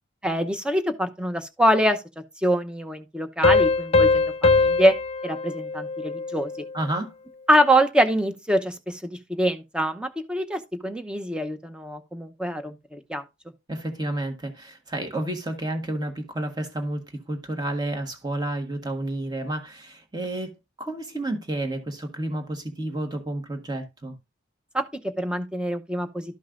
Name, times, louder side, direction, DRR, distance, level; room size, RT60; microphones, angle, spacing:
voice 1, 0.2-2.0 2.4-4.9 5.2-6.5 7.5-13.2 24.7-26.4, equal, 5° right, 0.8 m, -24 dB
Piano, 3.4-6.7, left 3 dB, 35° left, 0.8 m, -22 dB
voice 2, 6.7-7.1 13.7-20.5 20.8-24.1, right 1 dB, 20° right, 1.5 m, -30 dB
12.5 x 5.4 x 2.5 m
head